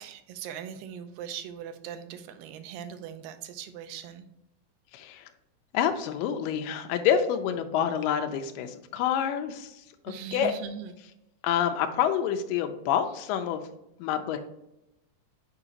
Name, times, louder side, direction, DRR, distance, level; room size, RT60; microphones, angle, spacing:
voice 1, 0.0-4.3 10.1-11.0, right 8 dB, 85° right, 8 dB, 2.3 m, -40 dB
voice 2, 4.9-5.2 5.7-9.7 10.1-10.5 11.4-13.6 14.0-14.5, left 9 dB, 80° left, 6 dB, 2.2 m, -27 dB
7.0 x 4.9 x 2.8 m, 0.87 s
omnidirectional pair, 4.0 m